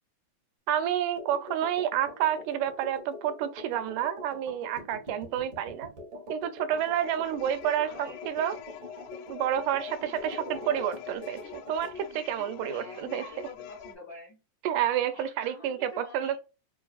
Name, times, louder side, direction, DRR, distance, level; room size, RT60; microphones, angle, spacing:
voice 1, 0.7-5.9 6.3-8.5 9.3-11.4 11.7-13.2 14.6-16.4, right 10 dB, 85° right, 2.0 m, -29 dB
sound 1, 1.2-12.0, left 1 dB, 55° right, 1.1 m, -45 dB
sound 2, 6.8-13.9, left 8 dB, 85° left, 2.1 m, -45 dB
voice 2, 7.8-8.4 12.6-14.4 15.1-16.4, left 2 dB, 70° left, 1.1 m, -47 dB
5.7 x 2.4 x 2.3 m
omnidirectional pair, 3.5 m